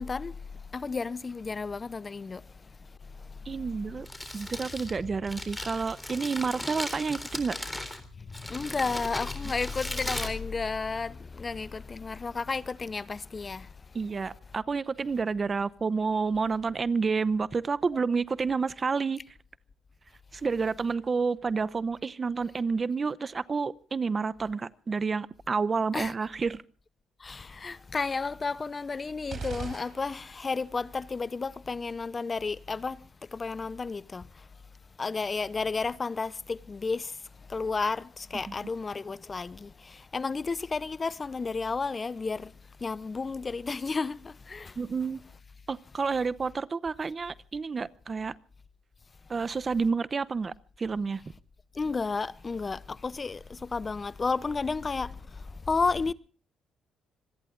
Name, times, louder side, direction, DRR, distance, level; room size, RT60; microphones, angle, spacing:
voice 1, 0.0-2.8 3.0-3.6 8.2-14.0 25.9-26.1 27.2-34.5 35.0-37.2 37.5-42.5 42.8-44.8 51.7-56.1, left 4 dB, 30° left, 0.7 m, -32 dB
voice 2, 3.5-4.1 4.3-7.6 13.9-19.2 20.3-26.6 38.5-38.6 44.8-45.2 45.7-48.4 49.3-51.2, right 5 dB, 35° right, 0.8 m, -29 dB
Crumpling crinkling, 3.8-11.2, left 1 dB, 10° left, 3.8 m, -38 dB
sound 1, 29.3-30.6, right 5 dB, 55° right, 6.0 m, -40 dB
26.5 x 20.5 x 2.5 m
cardioid pair, 90°, 0 cm